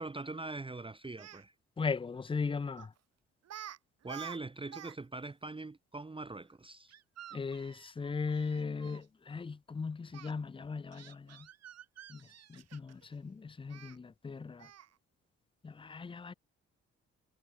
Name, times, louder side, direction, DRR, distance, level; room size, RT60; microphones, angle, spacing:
voice 1, 0.0-1.5 4.0-6.9, right 3 dB, 15° right, 0.9 m, -42 dB
Speech, 1.0-1.4 2.8-3.0 3.4-3.8 4.0-5.0 5.2-5.3 6.9-9.0 10.1-10.3 10.9-13.1 13.7-14.0 14.6-14.9, right 11 dB, 55° right, 1.1 m, -49 dB
voice 2, 1.8-2.9 7.3-11.5 12.1-12.2 12.5-14.7 15.6-16.3, left 4 dB, 15° left, 0.5 m, -38 dB
hypercardioid pair, 50°, 30 cm